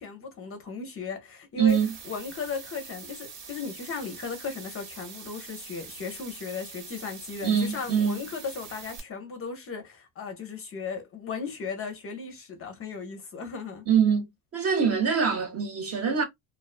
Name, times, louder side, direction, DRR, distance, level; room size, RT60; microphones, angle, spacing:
voice 1, 0.0-13.9, left 5 dB, 30° left, 0.5 m, -36 dB
voice 2, 1.6-1.9 7.4-8.2 13.9-14.3 14.5-16.2, right 7 dB, 30° right, 0.6 m, -24 dB
sound 1, 1.7-9.0, right 5 dB, 80° right, 1.3 m, -44 dB
2.4 x 2.2 x 2.3 m
cardioid pair, 130°, 47 cm